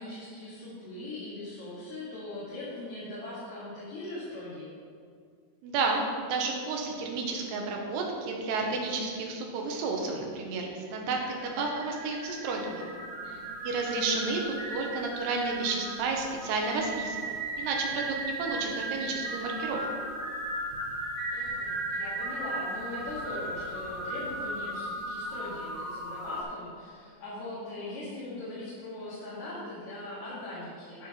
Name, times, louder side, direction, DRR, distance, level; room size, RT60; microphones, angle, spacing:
voice 1, 0.0-4.8 13.2-13.5 21.3-31.1, left 2 dB, 55° left, -9 dB, 3.0 m, -40 dB
voice 2, 5.6-12.9 13.6-19.9, right 3 dB, 85° right, 1 dB, 3.2 m, -31 dB
sound 1, 10.7-26.4, right 1 dB, 45° right, 2.0 m, -36 dB
13.5 x 4.5 x 5.4 m, 2.2 s
omnidirectional pair, 4.6 m